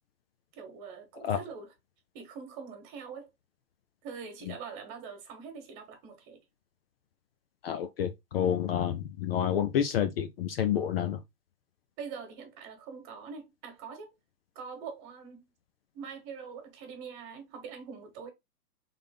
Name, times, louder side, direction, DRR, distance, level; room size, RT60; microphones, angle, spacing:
voice 1, 0.5-1.7 2.1-3.3 4.0-6.4 12.0-14.1 14.6-15.5 15.9-18.3, right 6 dB, 30° right, 1.8 m, -43 dB
voice 2, 7.6-11.2, left 9 dB, 40° left, 0.6 m, -29 dB
3.7 x 3.6 x 3.8 m
hypercardioid pair, 130°, 49 cm